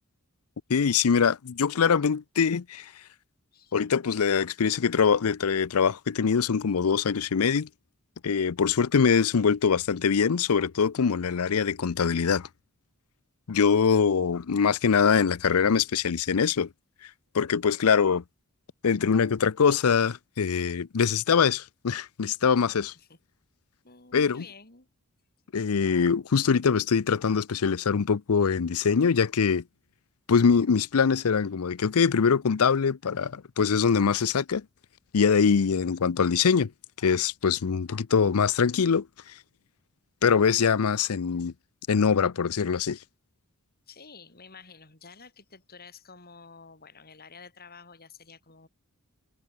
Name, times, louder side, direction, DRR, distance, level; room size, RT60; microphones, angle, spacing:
voice 1, 0.7-2.9 3.7-7.7 8.2-12.5 13.5-16.7 17.3-18.2 18.8-22.9 24.1-24.4 25.5-29.6 30.3-34.6 35.1-36.7 37.0-39.1 40.2-41.5 41.9-43.0, left 6 dB, 75° left, 0.6 m, -23 dB
voice 2, 3.5-3.9 23.0-23.2 23.8-24.9 43.9-48.7, left 5 dB, 45° left, 7.2 m, -50 dB
head